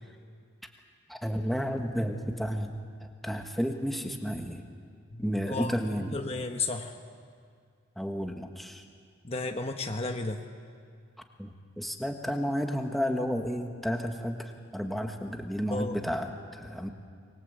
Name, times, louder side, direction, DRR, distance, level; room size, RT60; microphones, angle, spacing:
voice 1, 1.1-2.7 3.0-4.6 5.2-6.2 8.0-8.8 11.4-16.9, equal, ahead, 3 dB, 1.5 m, -32 dB
voice 2, 5.1-5.7 6.1-6.9 9.2-10.4 15.7-15.9, left 3 dB, 30° left, 4 dB, 1.1 m, -33 dB
26.0 x 22.0 x 8.1 m, 2.2 s
head